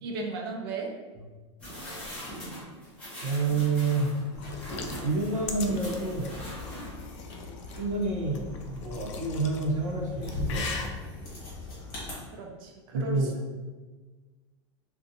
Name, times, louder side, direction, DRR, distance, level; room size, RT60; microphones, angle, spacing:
voice 1, 0.0-0.9 12.3-13.3, right 2 dB, 50° right, 1 dB, 0.4 m, -35 dB
sound 1, 1.6-7.3 7.7-7.8, equal, 5° left, 0.6 m, -41 dB
voice 2, 3.2-4.1 5.0-6.3 7.8-10.9 12.9-13.3, right 3 dB, 85° right, -2 dB, 0.7 m, -28 dB
sound 2, 4.4-7.8 8.3-9.7 10.1-10.9, left 5 dB, 70° left, 0.4 m, -40 dB
sound 3, 4.4-12.1, left 3 dB, 25° left, 1.2 m, -40 dB
2.6 x 2.2 x 2.6 m, 1.3 s
supercardioid pair, 180°, 16 cm